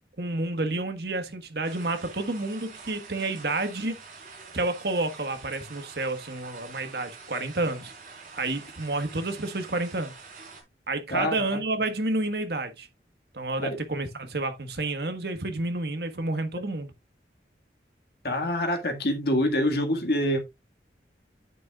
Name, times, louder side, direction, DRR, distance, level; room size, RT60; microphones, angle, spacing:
voice 1, 0.2-4.0 4.5-7.9 8.3-10.1 10.9-12.9 13.3-16.9, right 2 dB, 65° right, 1.5 m, -30 dB
sound 1, 1.6-10.6, right 4 dB, 50° right, 4.1 m, -46 dB
voice 2, 11.1-11.6 13.6-13.8 18.2-20.4, left 1 dB, 60° left, 1.9 m, -26 dB
9.3 x 8.2 x 2.4 m
head